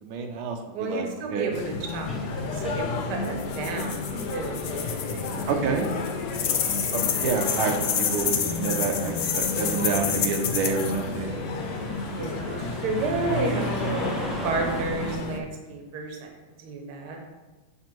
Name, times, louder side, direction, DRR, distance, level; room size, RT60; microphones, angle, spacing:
voice 1, 0.0-1.5 5.5-5.9 6.9-11.4, right 5 dB, 85° right, 3 dB, 1.6 m, -28 dB
voice 2, 0.7-5.4 6.9-7.7 11.9-12.4 12.7-14.2 14.4-17.2, right 3 dB, 60° right, 2 dB, 1.4 m, -32 dB
sound 1, 1.5-15.4, left 4 dB, 85° left, 1.5 m, -32 dB
sound 2, 2.1-15.2, equal, ahead, 0.5 m, -38 dB
sound 3, 3.2-5.5 5.8-11.0, left 8 dB, 70° left, 0.9 m, -29 dB
7.1 x 3.4 x 4.4 m, 1.2 s
omnidirectional pair, 2.3 m